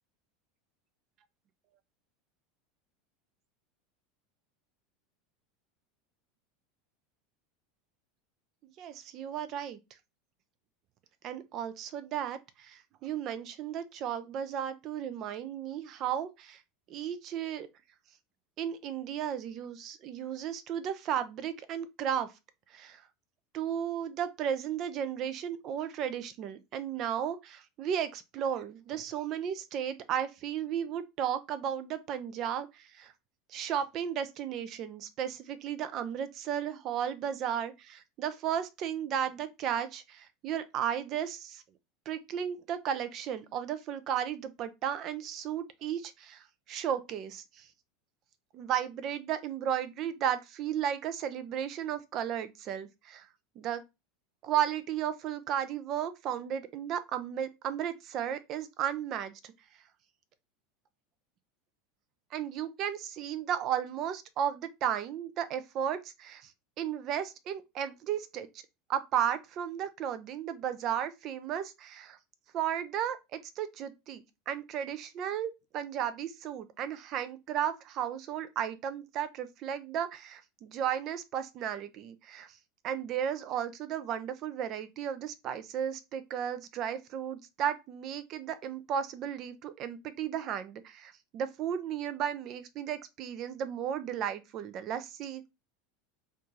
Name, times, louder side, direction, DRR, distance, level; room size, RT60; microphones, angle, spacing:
voice 1, 8.6-9.8 11.2-16.6 16.9-17.7 18.6-22.3 22.7-23.0 23.5-33.1 33.5-41.6 42.1-47.7 48.5-53.3 53.6-53.8 54.4-59.5 62.3-66.5 66.8-68.5 68.9-72.2 72.5-82.6 82.8-95.4, right 9 dB, 50° right, 0.6 m, -34 dB
4.2 x 2.6 x 3.1 m
hypercardioid pair, 90°, 0 cm